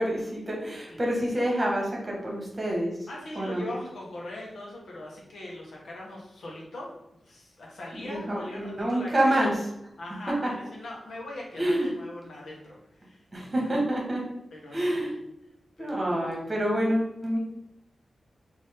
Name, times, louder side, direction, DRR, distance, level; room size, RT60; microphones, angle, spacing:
voice 1, 0.0-3.0 3.3-3.7 7.9-9.6 10.4-10.5 11.6-11.9 13.3-14.2 14.7-15.1 15.8-17.4, right 1 dB, 25° right, -2 dB, 1.3 m, -27 dB
voice 2, 3.1-6.9 7.2-9.5 10.0-13.7 14.5-15.1 15.8-16.2, left 1 dB, 90° left, -3 dB, 1.3 m, -41 dB
4.1 x 3.0 x 3.6 m, 0.83 s
wide cardioid pair, 125°, 0 cm